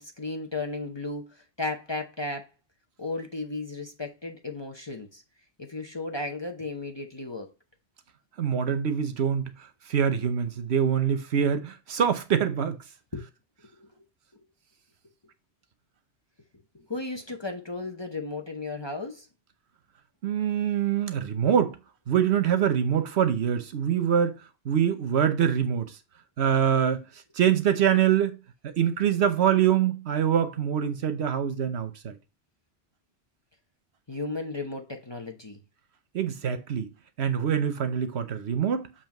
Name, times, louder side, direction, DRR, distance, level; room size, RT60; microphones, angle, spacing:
voice 1, 0.0-2.5 3.0-5.2 5.6-7.5 13.1-13.3 13.6-13.9 16.7-19.3 34.1-35.6, left 3 dB, 30° left, 0.8 m, -35 dB
voice 2, 8.4-9.5 9.9-12.8 20.2-21.8 22.1-25.9 26.4-27.0 27.3-28.4 28.6-32.2 36.1-36.9 37.2-38.9, right 8 dB, 75° right, 1.1 m, -24 dB
7.3 x 2.8 x 5.8 m
omnidirectional pair, 1.1 m